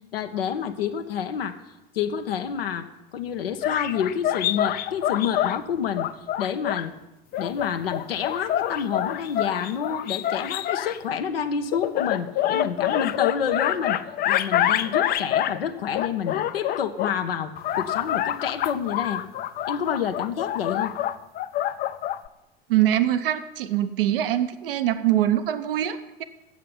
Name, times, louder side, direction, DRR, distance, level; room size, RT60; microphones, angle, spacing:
voice 1, 0.1-1.6 1.9-2.9 3.1-6.1 6.4-6.9 7.4-14.0 14.2-19.2 19.7-20.9, left 8 dB, 75° left, 7 dB, 0.9 m, -28 dB
sound 1, 3.6-5.6 6.0-6.9 7.3-11.0 11.7-15.6 15.9-17.1 17.6-22.3, left 11 dB, 30° left, 0.5 m, -26 dB
voice 2, 22.7-26.2, right 12 dB, 70° right, 12 dB, 0.8 m, -23 dB
8.3 x 7.6 x 8.5 m, 0.97 s
figure-of-eight pair, 75°, 30 cm